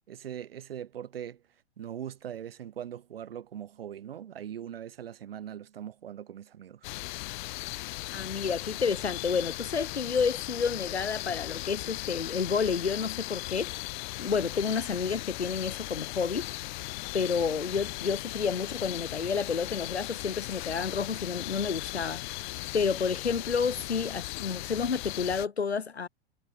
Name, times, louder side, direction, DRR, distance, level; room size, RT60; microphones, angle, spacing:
voice 1, 0.1-1.4 1.8-6.9, right 10 dB, 65° right, 4.6 m, -41 dB
sound 1, 6.8-25.5, left 21 dB, 45° left, 4.2 m, -38 dB
voice 2, 8.1-13.9 14.2-16.5 17.1-22.4 22.7-26.1, left 5 dB, 85° left, 1.0 m, -30 dB
figure-of-eight pair, 95°, 32 cm